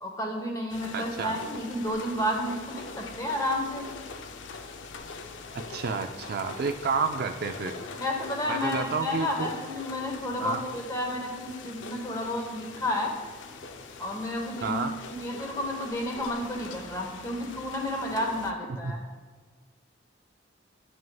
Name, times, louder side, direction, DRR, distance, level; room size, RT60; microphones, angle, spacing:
voice 1, 0.0-3.9 8.0-13.1 14.0-14.8 15.1-19.0, left 1 dB, 15° left, 1 dB, 1.0 m, -31 dB
sound 1, 0.7-18.5, left 4 dB, 65° left, 0.5 m, -43 dB
voice 2, 0.9-1.4 5.5-7.8 8.5-9.5 10.4-10.6 14.6-14.9 18.7-18.9, right 4 dB, 50° right, 6 dB, 0.3 m, -30 dB
10.5 x 6.2 x 2.3 m, 1.5 s
head